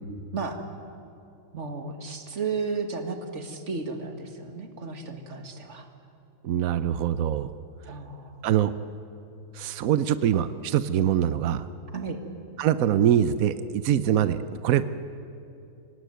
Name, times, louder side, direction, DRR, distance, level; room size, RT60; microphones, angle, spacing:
voice 1, 0.3-0.6 1.5-5.9 7.8-8.4 11.9-12.2, right 4 dB, 35° right, 6 dB, 2.0 m, -33 dB
voice 2, 6.4-7.5 8.4-8.7 9.5-11.6 12.6-14.8, right 10 dB, 80° right, 13 dB, 0.7 m, -23 dB
26.0 x 18.5 x 9.3 m, 2.9 s
omnidirectional pair, 2.3 m